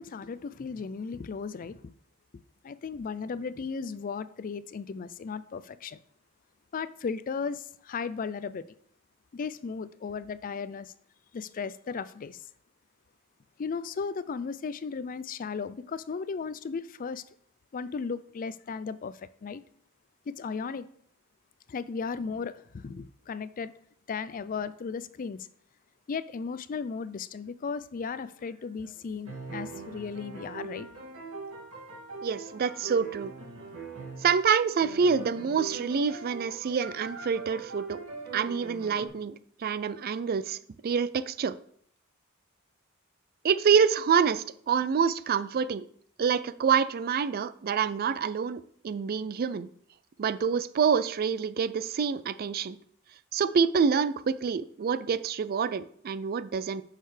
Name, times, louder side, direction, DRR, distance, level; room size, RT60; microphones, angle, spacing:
voice 1, 0.0-1.9 2.6-6.0 6.7-8.6 9.3-10.9 11.3-12.4 13.6-17.2 17.7-19.6 20.3-20.9 21.7-23.7 24.1-25.5 26.1-30.9, left 5 dB, 40° left, 0.4 m, -35 dB
sound 1, 28.1-29.0 29.3-34.4 34.8-39.1, right 3 dB, 75° right, 2.2 m, -42 dB
voice 2, 32.2-33.3 34.2-38.0 38.3-40.6 40.8-41.6 43.4-45.9 46.2-49.7 50.2-52.8 53.3-56.8, right 6 dB, 45° right, 0.4 m, -27 dB
10.0 x 6.6 x 3.3 m
head